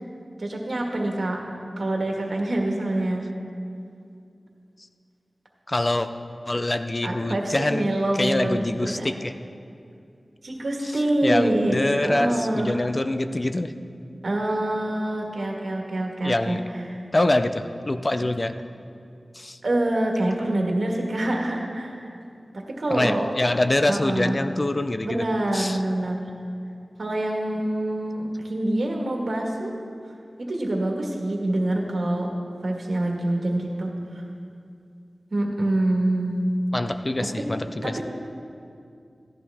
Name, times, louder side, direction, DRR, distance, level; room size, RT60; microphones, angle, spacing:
voice 1, 0.4-3.3 6.5-6.6 7.0-9.1 10.4-12.8 14.2-17.0 18.1-18.3 19.6-22.1 22.7-23.3 23.9-24.4 25.0-26.3 27.0-29.8 30.5-32.3 32.6-33.9 35.3-36.5 37.8-38.0, right 1 dB, 70° right, 0 dB, 1.6 m, -26 dB
voice 2, 5.7-6.1 6.5-7.9 8.2-9.3 11.2-13.7 16.2-16.6 17.1-18.6 19.3-19.6 22.9-25.3 25.5-25.8 36.7-38.0, left 1 dB, 35° left, 9 dB, 0.4 m, -25 dB
14.0 x 11.0 x 3.5 m, 2.4 s
wide cardioid pair, 85°, 0 cm